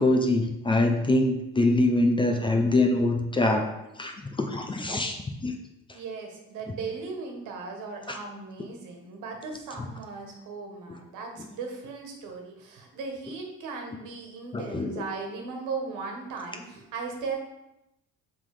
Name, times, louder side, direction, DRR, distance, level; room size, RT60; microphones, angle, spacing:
voice 1, 0.0-5.5 8.1-8.2 14.5-14.9, left 2 dB, 15° left, 4 dB, 0.6 m, -24 dB
voice 2, 5.9-17.4, right 4 dB, 80° right, 3 dB, 1.5 m, -37 dB
7.2 x 3.8 x 4.8 m, 0.89 s
cardioid pair, 145°, 30 cm